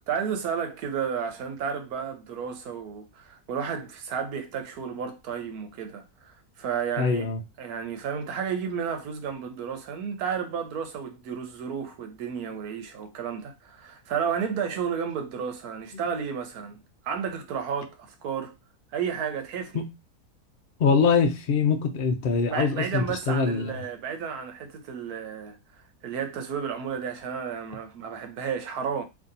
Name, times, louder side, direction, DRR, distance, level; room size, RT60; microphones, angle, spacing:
voice 1, 0.1-7.3 7.6-18.5 18.9-19.8 22.5-25.6 26.0-29.0, right 7 dB, 80° right, 1.2 m, -32 dB
voice 2, 7.0-7.4 15.9-16.0 19.7-19.9 20.8-23.8, left 5 dB, 70° left, 0.5 m, -24 dB
2.8 x 2.7 x 3.8 m
omnidirectional pair, 1.6 m